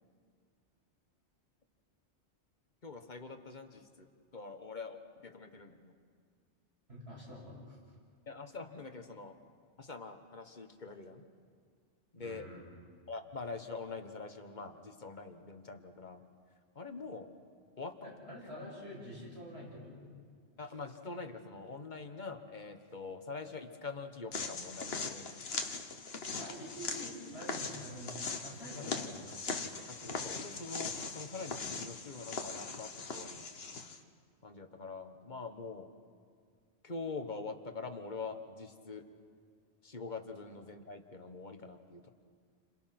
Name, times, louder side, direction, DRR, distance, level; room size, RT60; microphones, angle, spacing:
voice 1, 2.8-5.9 8.3-9.4 9.8-11.3 12.1-12.5 13.1-16.2 16.7-17.3 17.8-18.1 20.6-25.4 28.7-28.9 29.9-33.6 34.4-35.9 36.8-39.0 39.8-42.1, left 4 dB, 40° left, 6 dB, 1.5 m, -44 dB
voice 2, 6.9-7.8 12.2-12.8 18.0-20.2 26.3-29.4, equal, 65° right, -6 dB, 8.4 m, -47 dB
sound 1, 24.3-34.0, left 4 dB, 60° left, 1.5 m, -40 dB
29.5 x 26.5 x 6.0 m, 2.1 s
omnidirectional pair, 1.2 m